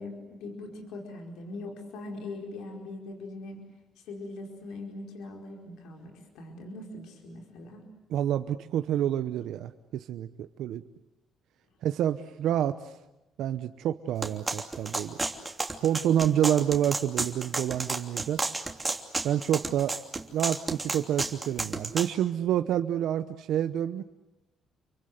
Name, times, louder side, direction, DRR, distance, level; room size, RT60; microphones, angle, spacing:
voice 1, 0.0-3.6 4.0-7.9, left 2 dB, 90° left, 2 dB, 4.8 m, -41 dB
voice 2, 8.1-10.8 11.8-12.9 13.4-15.2 15.8-18.4 19.2-19.9 20.3-24.0, right 10 dB, 80° right, 10 dB, 0.9 m, -28 dB
sound 1, 14.2-22.1, right 3 dB, 20° right, 3.0 m, -32 dB
29.5 x 24.0 x 8.2 m, 0.99 s
cardioid pair, 90°, 0 cm